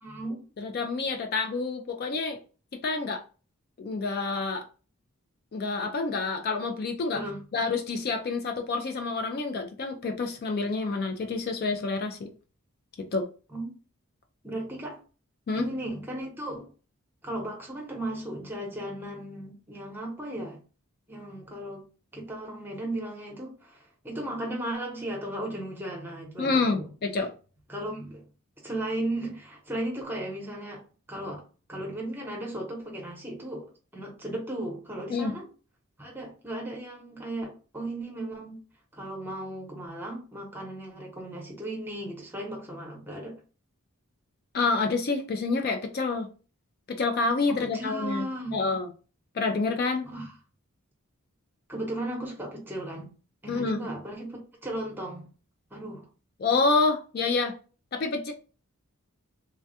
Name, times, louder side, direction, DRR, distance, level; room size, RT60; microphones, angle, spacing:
voice 1, 0.0-0.4 7.1-7.4 13.5-13.6 14.4-15.0 15.5-16.7 17.2-20.6 21.1-21.8 22.1-26.9 27.7-28.2 28.6-30.8 31.1-33.6 33.9-35.5 36.0-38.6 38.9-43.3 47.5-48.6 50.0-50.3 51.7-53.1 53.4-55.3 55.7-56.1, right 1 dB, 10° right, 0.8 m, -36 dB
voice 2, 0.6-2.4 2.7-3.2 3.8-4.7 5.5-7.2 7.5-12.3 13.0-13.3 15.5-15.7 26.4-27.3 35.1-35.3 44.5-46.3 46.9-48.3 48.5-48.9 49.3-50.1 53.5-53.8 56.4-57.6 57.9-58.3, left 3 dB, 45° left, 0.3 m, -28 dB
3.2 x 2.3 x 2.7 m
head